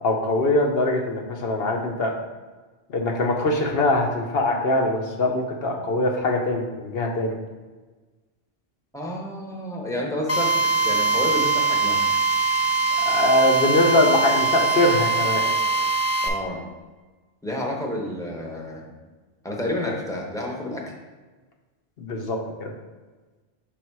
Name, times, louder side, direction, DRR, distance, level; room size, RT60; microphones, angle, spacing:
voice 1, 0.0-2.1 2.9-7.4 13.0-15.4 22.0-22.7, left 2 dB, 65° left, 1 dB, 1.0 m, -22 dB
voice 2, 8.9-10.5 10.8-12.1 16.2-16.6 17.4-18.9 19.4-20.9, left 1 dB, 5° left, -1 dB, 0.8 m, -30 dB
Drill, 10.3-16.3, right 3 dB, 20° left, 0.4 m, -22 dB
6.3 x 3.5 x 4.7 m, 1.3 s
omnidirectional pair, 1.1 m